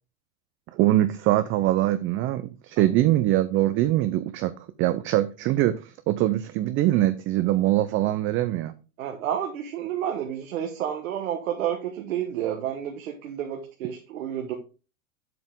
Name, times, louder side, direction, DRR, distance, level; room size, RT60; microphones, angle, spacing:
voice 1, 0.7-4.5 4.8-8.7, right 14 dB, 30° right, 12 dB, 0.5 m, -23 dB
voice 2, 9.0-14.5, right 10 dB, 75° right, 3 dB, 1.3 m, -30 dB
7.6 x 5.4 x 3.8 m, 0.33 s
hypercardioid pair, 115°, 41 cm